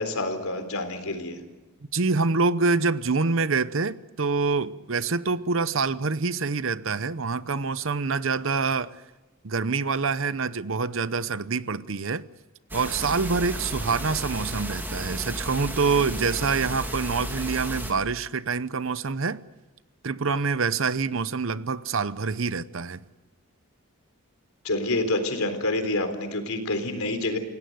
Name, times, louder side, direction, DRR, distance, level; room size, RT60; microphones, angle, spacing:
voice 1, 0.0-1.4 24.6-27.4, left 2 dB, 75° left, 3.9 m, -27 dB
voice 2, 1.9-9.0 9.4-12.3 12.7-19.4 20.0-23.0, right 4 dB, 60° right, 0.8 m, -26 dB
sound 1, 12.7-17.9, equal, 10° right, 2.6 m, -33 dB
29.0 x 17.0 x 7.9 m
head